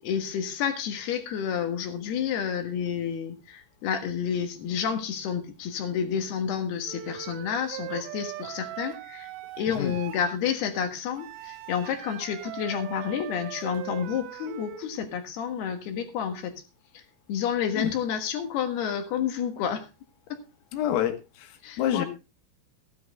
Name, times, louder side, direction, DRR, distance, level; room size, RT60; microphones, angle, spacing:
voice 1, 0.0-9.3 9.6-16.5 16.9-17.0 17.3-19.9 20.3-20.4 21.6-22.0, left 8 dB, 65° left, 6 dB, 2.9 m, -30 dB
Wind instrument woodwind instrument, 6.9-10.4 11.2-14.9, right 14 dB, 90° right, 3.9 m, -40 dB
voice 2, 20.7-22.1, left 11 dB, 80° left, 6 dB, 4.2 m, -28 dB
15.0 x 10.5 x 3.6 m, 0.28 s
omnidirectional pair, 6.0 m